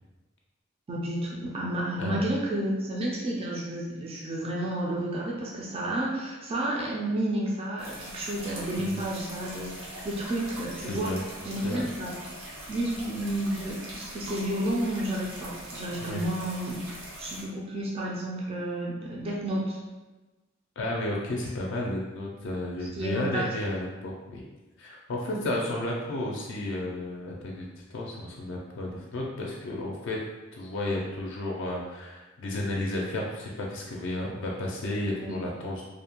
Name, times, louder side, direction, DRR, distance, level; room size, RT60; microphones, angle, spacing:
voice 1, 0.9-11.1 11.4-12.1 12.7-16.8 17.2-19.8 22.9-23.5 35.3-35.4, right 1 dB, 30° right, -4 dB, 0.3 m, -31 dB
sound 1, 7.8-17.4, right 1 dB, 90° right, 0.8 m, -42 dB
voice 2, 10.8-11.2 11.6-11.9 16.0-16.2 20.8-24.4 24.8-27.7 27.9-30.2 30.5-35.8, left 1 dB, 65° left, -2 dB, 0.4 m, -32 dB
2.5 x 2.1 x 2.8 m, 1.2 s
head